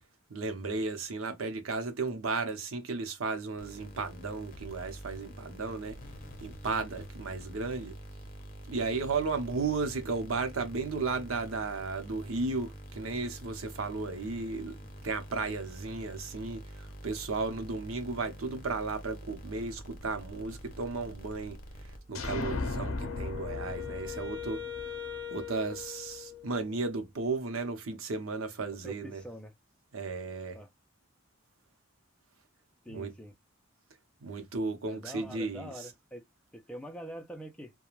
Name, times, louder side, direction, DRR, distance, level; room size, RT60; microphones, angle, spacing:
voice 1, 0.3-6.0 6.4-8.0 8.7-14.8 15.0-21.6 22.1-24.6 25.3-29.2 29.9-30.6 32.9-33.1 34.2-35.7, right 3 dB, 80° right, 0.8 m, -34 dB
sound 1, 3.6-22.4, right 1 dB, 40° left, 0.7 m, -46 dB
sound 2, 22.1-25.8, left 3 dB, 80° left, 0.5 m, -37 dB
Wind instrument woodwind instrument, 23.0-26.9, left 9 dB, 40° right, 1.5 m, -41 dB
voice 2, 28.8-29.5 30.5-30.7 32.8-33.3 34.8-36.2 36.5-37.7, equal, 5° left, 0.5 m, -44 dB
2.4 x 2.2 x 3.0 m
head